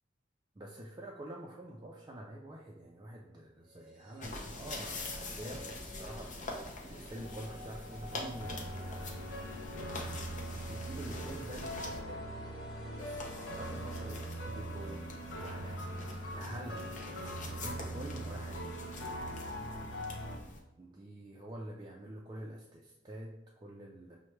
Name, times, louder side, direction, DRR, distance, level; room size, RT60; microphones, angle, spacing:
voice 1, 0.6-9.2 9.7-12.3 12.9-18.6 20.8-24.2, right 1 dB, 20° right, -2 dB, 0.4 m, -47 dB
sound 1, 3.6-15.8 16.0-16.1, equal, 5° right, 0.7 m, -53 dB
sound 2, 4.2-12.0 13.0-20.6, left 2 dB, 40° left, 0.6 m, -45 dB
sound 3, 8.4-20.4, right 1 dB, 70° left, 0.8 m, -41 dB
5.7 x 2.1 x 3.1 m, 1.0 s
head